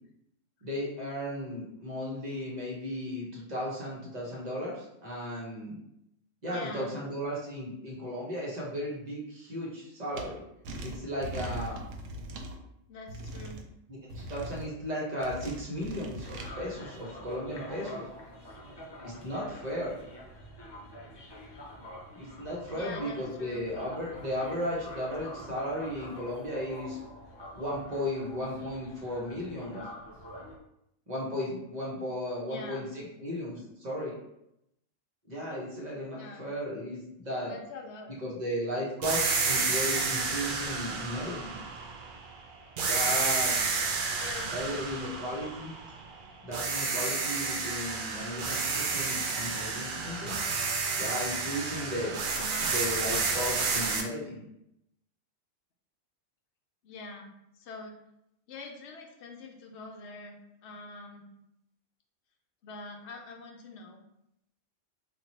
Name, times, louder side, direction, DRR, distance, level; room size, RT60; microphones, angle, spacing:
voice 1, 0.6-5.8 6.4-10.4 10.8-11.8 13.9-18.1 19.0-20.0 22.1-27.0 27.5-29.8 31.1-34.1 35.3-37.5 38.2-41.6 42.8-43.6 44.5-45.7 46.4-50.4 51.0-52.2 52.6-54.4, equal, 35° right, -4 dB, 1.0 m, -35 dB
voice 2, 6.5-6.9 12.9-13.6 22.7-23.7 32.4-32.9 36.1-36.5 37.5-38.1 43.4-43.7 44.2-44.9 52.3-52.7 53.0-53.2 56.8-57.3 57.5-58.0 58.5-60.4 60.6-61.3 62.6-64.0, left 3 dB, 65° left, 2 dB, 0.9 m, -44 dB
sound 1, 10.1-10.2 10.6-12.5 13.1-13.6 14.1-14.7 15.2-16.5, right 1 dB, 75° right, 0.9 m, -40 dB
sound 2, 16.2-30.6, equal, 30° left, 0.5 m, -46 dB
sound 3, 39.0-42.3 42.8-46.1 46.5-54.0, right 4 dB, 60° right, 0.5 m, -30 dB
3.0 x 2.6 x 4.1 m, 0.81 s
omnidirectional pair, 1.3 m